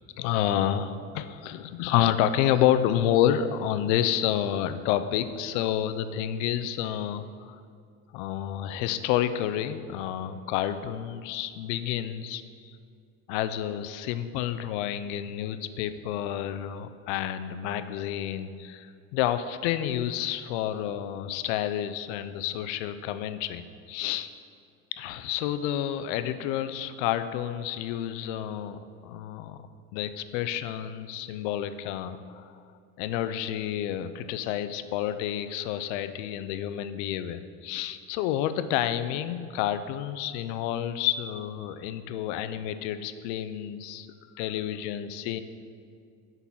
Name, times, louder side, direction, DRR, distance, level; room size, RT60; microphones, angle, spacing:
voice 1, 0.2-7.6 8.1-12.7 13.3-18.9 19.1-24.3 25.0-29.6 29.9-32.4 33.0-44.1 44.4-45.4, left 11 dB, 80° left, 11 dB, 0.5 m, -29 dB
6.0 x 4.0 x 5.8 m, 2.3 s
supercardioid pair, 110°, 35 cm